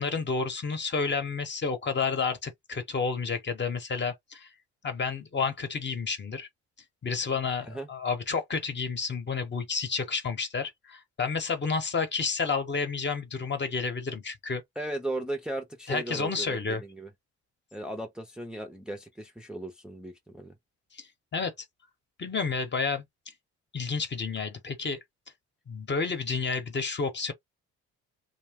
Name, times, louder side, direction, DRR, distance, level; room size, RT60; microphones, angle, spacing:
voice 1, 0.0-4.5 4.8-6.5 7.0-14.6 15.9-16.8 20.9-21.5 22.2-23.1 23.7-25.0 25.7-27.3, left 5 dB, 35° left, 1.0 m, -30 dB
voice 2, 14.8-17.1 17.7-20.5, right 1 dB, 5° right, 0.6 m, -36 dB
2.7 x 2.2 x 3.5 m
cardioid pair, 90°, 30 cm